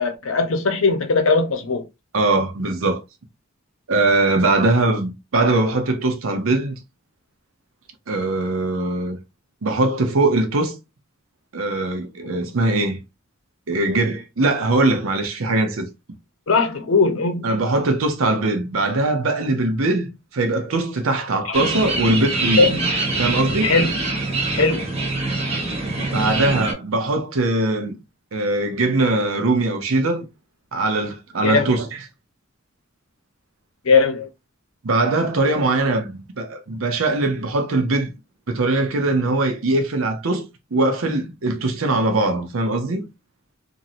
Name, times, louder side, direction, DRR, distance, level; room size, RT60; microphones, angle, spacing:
voice 1, 0.0-1.8 16.5-17.6 21.5-21.6 22.6-22.9 23.6-24.0 24.5-24.9 31.4-31.7 33.8-34.3, left 4 dB, 80° left, 0.7 m, -19 dB
voice 2, 2.1-3.0 3.9-6.8 8.1-9.2 9.6-10.8 11.5-13.0 13.7-15.9 17.4-22.7 23.2-23.7 26.1-28.0 28.3-30.3 30.7-31.9 34.8-38.1 38.5-43.1, right 2 dB, 80° right, 0.7 m, -21 dB
sound 1, 21.5-26.7, right 2 dB, 30° right, 1.0 m, -24 dB
3.0 x 2.6 x 2.5 m
head